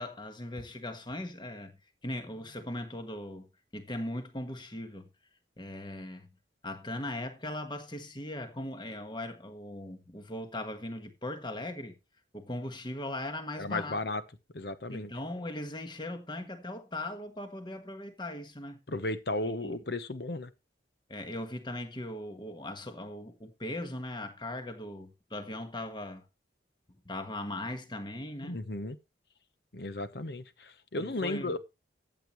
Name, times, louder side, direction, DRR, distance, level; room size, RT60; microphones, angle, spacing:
voice 1, 0.0-1.8 2.0-5.1 5.6-6.3 6.6-11.9 12.3-14.0 14.9-18.8 19.4-19.7 21.1-26.2 27.0-28.6 31.0-31.5, left 1 dB, 25° left, 1.5 m, -39 dB
voice 2, 13.6-14.2 14.5-15.1 18.9-20.5 28.4-29.0 29.7-31.6, left 2 dB, 60° left, 1.0 m, -34 dB
14.5 x 8.8 x 3.1 m
head